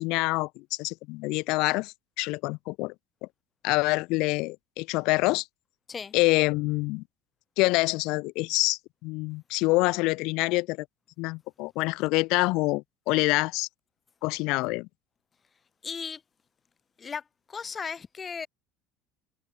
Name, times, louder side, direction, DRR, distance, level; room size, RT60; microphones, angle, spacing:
voice 1, 0.0-2.9 3.6-5.4 6.1-7.0 7.6-10.9 11.2-13.7 14.2-14.9, left 23 dB, 70° left, 0.6 m, -26 dB
voice 2, 15.8-16.2 17.0-18.5, left 6 dB, 30° left, 2.6 m, -36 dB
supercardioid pair, 100°, 0 cm